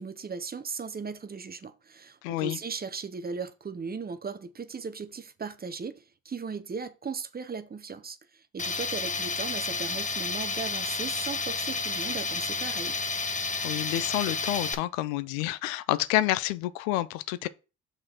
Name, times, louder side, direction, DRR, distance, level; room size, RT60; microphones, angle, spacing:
voice 1, 0.0-13.0, right 5 dB, 25° right, 0.8 m, -37 dB
voice 2, 2.2-2.6 13.6-17.5, left 15 dB, 80° left, 0.5 m, -29 dB
Tools, 8.6-14.7, left 4 dB, 20° left, 0.9 m, -31 dB
6.5 x 4.1 x 4.4 m
hypercardioid pair, 65°, 40 cm